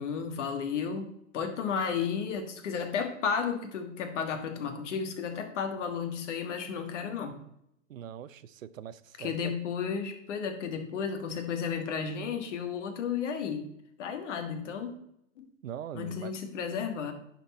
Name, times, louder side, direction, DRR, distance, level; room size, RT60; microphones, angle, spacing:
voice 1, 0.0-7.4 9.2-13.7 14.0-14.9 15.4-15.5 15.9-17.1, left 6 dB, 65° left, 7 dB, 1.7 m, -33 dB
voice 2, 7.9-9.5 15.6-16.3, right 10 dB, 90° right, 15 dB, 0.6 m, -42 dB
10.5 x 4.5 x 4.2 m, 0.77 s
hypercardioid pair, 120°, 38 cm